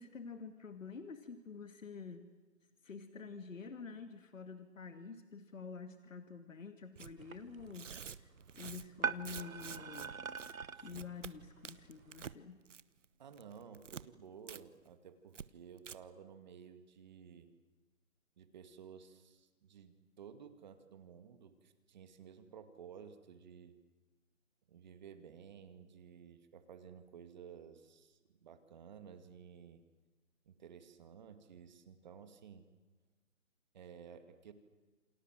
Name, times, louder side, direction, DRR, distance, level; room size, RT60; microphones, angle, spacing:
voice 1, 0.0-2.3 2.8-10.1 10.8-12.6, left 5 dB, 75° left, 9 dB, 2.3 m, -48 dB
Tearing, 7.0-7.1 7.7-10.1 10.4-10.5 10.9-11.3 11.6-12.4 12.7-13.0 13.3-14.0 14.5-14.6 14.9-15.0 15.3-15.5 15.8-16.0, right 7 dB, 65° right, 1.1 m, -48 dB
sound 1, 7.2-12.3, right 5 dB, 90° right, 1.4 m, -44 dB
voice 2, 13.2-17.5 18.4-23.7 24.7-29.8 30.5-32.7 33.7-34.5, right 7 dB, 35° right, 9 dB, 2.3 m, -54 dB
28.5 x 26.5 x 7.7 m, 1.2 s
hypercardioid pair, 160°, 40 cm